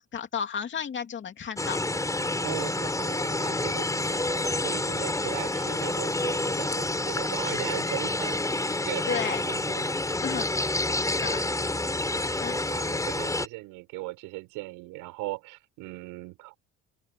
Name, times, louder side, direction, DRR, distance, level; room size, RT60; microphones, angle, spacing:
voice 1, 0.0-1.8 9.1-9.4 10.2-10.5 10.7-11.4 12.4-12.6, left 7 dB, 35° left, 2.7 m, -33 dB
sound 1, 1.6-13.5, left 2 dB, 10° left, 7.5 m, -28 dB
voice 2, 2.4-9.9 12.5-16.6, right 22 dB, 90° right, 6.9 m, -38 dB
open air
cardioid pair, 120°, 31 cm